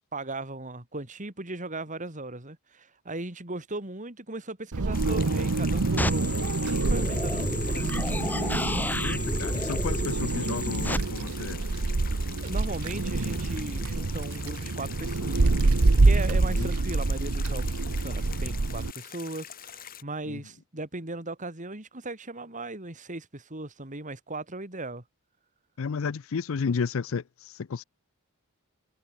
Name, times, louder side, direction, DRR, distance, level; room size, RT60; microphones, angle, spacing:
voice 1, 0.1-8.1 12.2-15.6 16.0-25.0, right 2 dB, 35° right, 2.9 m, -38 dB
Wind, 4.7-18.9, right 3 dB, 85° right, 1.0 m, -26 dB
sound 1, 4.9-20.0, left 10 dB, 40° left, 2.9 m, -44 dB
sound 2, 6.0-11.0, left 1 dB, 10° left, 2.1 m, -31 dB
voice 2, 9.0-11.6 16.3-16.7 20.3-20.4 25.8-27.8, left 5 dB, 65° left, 0.5 m, -32 dB
head